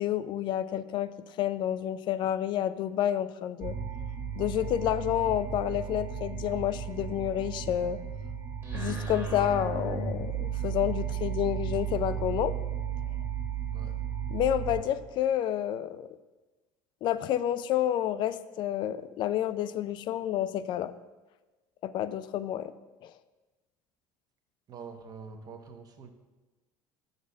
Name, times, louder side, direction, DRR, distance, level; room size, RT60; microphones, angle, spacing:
voice 1, 0.0-3.8 4.4-8.0 8.7-12.5 14.3-16.1 17.0-20.9 21.8-22.7 23.0-23.1, left 11 dB, 55° left, 14 dB, 0.4 m, -29 dB
sound 1, 3.6-14.8, right 7 dB, 25° right, 1.6 m, -34 dB
voice 2, 24.7-26.1, right 5 dB, 40° right, 5 dB, 1.0 m, -45 dB
7.0 x 4.1 x 6.4 m, 1.2 s
supercardioid pair, 110°, 10 cm